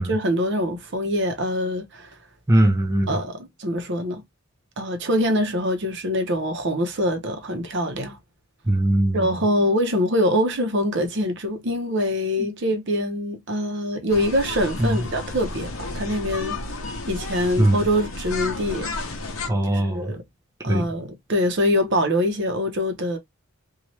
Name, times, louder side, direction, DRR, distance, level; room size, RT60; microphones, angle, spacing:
voice 1, 0.0-2.1 3.1-4.2 4.8-8.2 9.1-16.6 17.1-18.9 19.6-20.2 20.6-23.2, equal, 50° right, 0.7 m, -24 dB
voice 2, 2.5-3.1 8.7-9.4 14.8-14.9 17.6-17.8 19.5-20.1 20.7-20.9, right 1 dB, 15° right, 0.4 m, -20 dB
sound 1, 14.1-19.5, left 2 dB, 65° left, 0.7 m, -32 dB
2.7 x 2.3 x 3.0 m
head